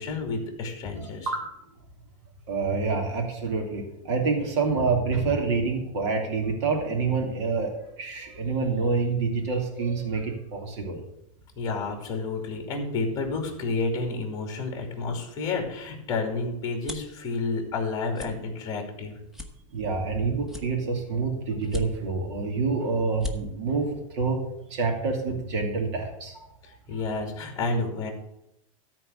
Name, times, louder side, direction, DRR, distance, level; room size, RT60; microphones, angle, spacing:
voice 1, 0.0-1.3 11.6-19.2 26.9-28.1, left 3 dB, 20° left, 3 dB, 2.7 m, -30 dB
voice 2, 0.9-1.4 2.5-11.0 19.7-24.4 24.7-26.4, right 4 dB, 55° right, 2 dB, 2.5 m, -27 dB
sound 1, 16.1-17.2 17.7-17.9 18.1-18.3 18.8-18.9 19.3-20.1 20.5-21.1 21.6-22.3 22.7-22.8 23.1-23.4, left 2 dB, ahead, 0.9 m, -37 dB
13.5 x 4.6 x 8.1 m, 0.83 s
supercardioid pair, 165°, 17 cm